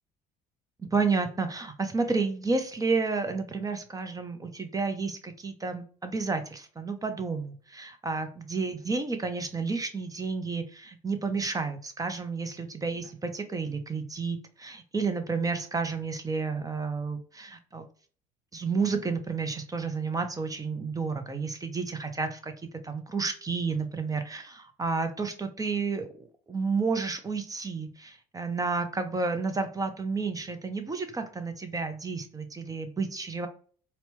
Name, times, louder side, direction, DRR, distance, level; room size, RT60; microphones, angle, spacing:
voice 1, 0.9-17.9 18.5-22.5 22.8-26.1 26.5-33.5, right 4 dB, 20° right, 8 dB, 0.6 m, -31 dB
4.1 x 2.2 x 2.9 m, 0.43 s
hypercardioid pair, 60°, 20 cm